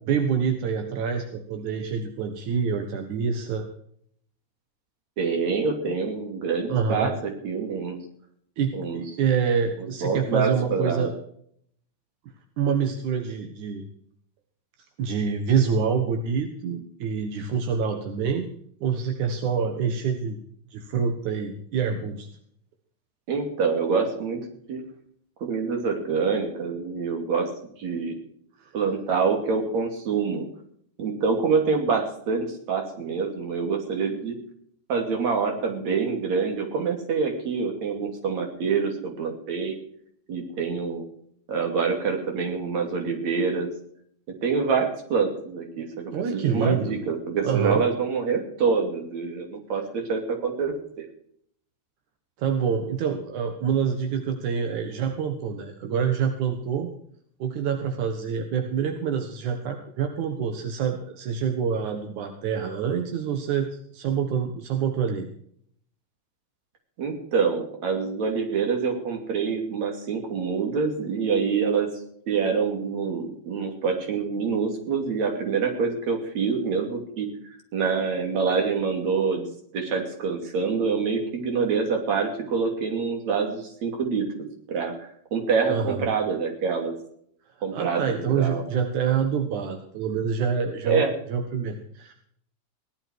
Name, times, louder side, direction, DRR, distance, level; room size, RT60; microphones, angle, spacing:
voice 1, 0.1-3.7 6.7-7.1 8.6-11.1 12.6-13.8 15.0-18.5 18.8-20.4 20.7-22.3 28.6-28.7 46.1-47.0 47.4-47.8 52.4-56.9 57.4-65.3 85.7-86.0 87.7-92.1, right 6 dB, 90° right, 5 dB, 2.9 m, -26 dB
voice 2, 5.2-8.0 8.7-9.0 10.0-11.1 23.3-24.8 25.4-27.5 27.8-28.2 28.7-30.5 31.0-34.4 34.9-39.8 40.3-41.0 41.5-43.7 44.3-51.1 67.0-71.9 72.3-79.5 79.7-84.3 84.7-87.0 87.6-88.6 90.9-91.1, right 5 dB, 70° right, 4 dB, 4.1 m, -26 dB
18.0 x 11.5 x 4.6 m, 0.64 s
omnidirectional pair, 3.3 m